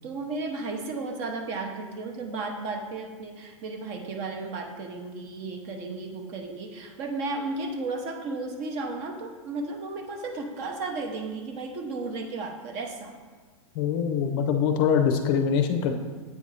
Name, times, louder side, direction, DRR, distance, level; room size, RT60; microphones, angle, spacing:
voice 1, 0.0-13.2, right 3 dB, 35° right, 4 dB, 0.8 m, -34 dB
voice 2, 13.8-15.9, left 7 dB, 40° left, 6 dB, 0.5 m, -23 dB
8.1 x 2.7 x 4.8 m, 1.4 s
hypercardioid pair, 130°, 18 cm